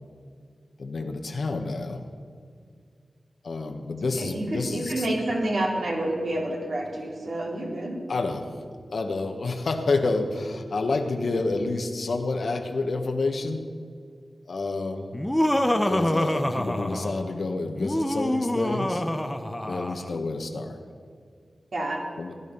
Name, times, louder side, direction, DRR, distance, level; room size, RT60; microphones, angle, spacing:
voice 1, 0.8-2.0 3.4-5.1 8.1-13.6 14.5-15.1 15.7-19.0 19.7-20.8 22.2-22.3, left 3 dB, 70° left, 4 dB, 1.3 m, -29 dB
voice 2, 4.2-8.0 21.7-22.0, right 1 dB, 65° right, -1 dB, 2.8 m, -28 dB
Laughter, 15.1-17.3 17.8-20.1, left 1 dB, 10° left, 0.9 m, -26 dB
16.5 x 11.0 x 5.5 m, 2.2 s
wide cardioid pair, 95°, 0 cm